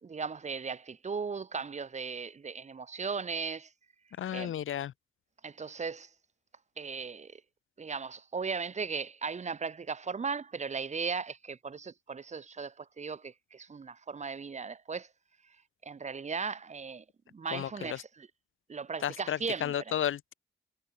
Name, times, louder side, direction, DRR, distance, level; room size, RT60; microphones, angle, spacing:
voice 1, 0.0-3.7 4.3-4.5 5.4-6.1 6.8-7.4 7.8-15.1 15.8-17.0 17.3-18.3 18.7-19.7, right 5 dB, 35° right, 0.8 m, -37 dB
voice 2, 4.2-4.9 17.5-18.0 19.0-20.3, left 10 dB, 85° left, 1.2 m, -33 dB
cardioid pair, 90°, 20 cm